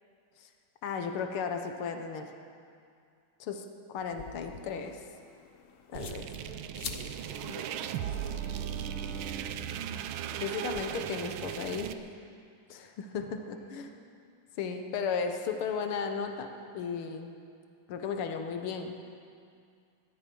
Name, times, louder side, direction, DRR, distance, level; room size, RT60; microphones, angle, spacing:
voice 1, 0.8-2.3 3.4-5.0 5.9-6.3 10.4-12.0 12.7-13.9 14.6-16.5 16.7-17.4 17.9-18.9, left 6 dB, 90° left, 5 dB, 1.9 m, -35 dB
sound 1, 4.0-10.8, left 6 dB, 50° left, 1.0 m, -48 dB
voice 2, 5.9-8.4 13.2-13.6 13.9-14.1, right 1 dB, 5° right, -9 dB, 5.3 m, -50 dB
sound 2, 5.9-11.9, right 10 dB, 85° right, 1.5 m, -37 dB
Bowed string instrument, 6.8-11.0, right 4 dB, 35° right, 2.2 m, -47 dB
20.0 x 13.0 x 5.4 m, 2.3 s
omnidirectional pair, 2.3 m